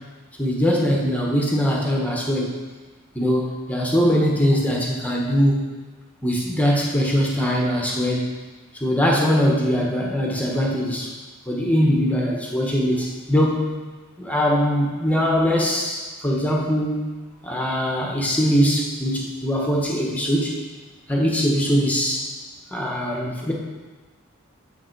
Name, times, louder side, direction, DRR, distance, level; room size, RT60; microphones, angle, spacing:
voice 1, 0.4-2.6 3.1-5.6 6.2-8.3 8.7-11.1 11.5-13.7 14.2-17.1 17.4-20.6 21.1-22.3 22.7-23.5, equal, 5° left, -2 dB, 1.1 m, -21 dB
9.3 x 7.5 x 4.6 m, 1.3 s
head